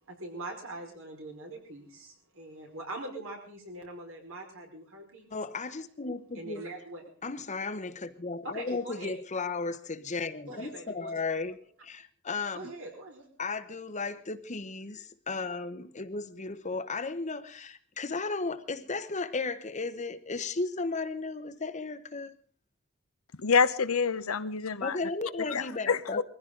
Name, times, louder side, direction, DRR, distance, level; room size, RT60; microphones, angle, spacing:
voice 1, 0.0-5.3 6.3-7.3 8.4-9.1 10.5-11.3 12.5-13.3, right 2 dB, 70° right, 5.1 m, -43 dB
voice 2, 5.3-6.7 7.2-12.7 13.4-22.4 24.8-26.2, left 3 dB, 35° left, 1.0 m, -35 dB
voice 3, 23.4-25.1 25.4-26.2, left 5 dB, 85° left, 0.9 m, -27 dB
22.0 x 15.0 x 3.9 m
head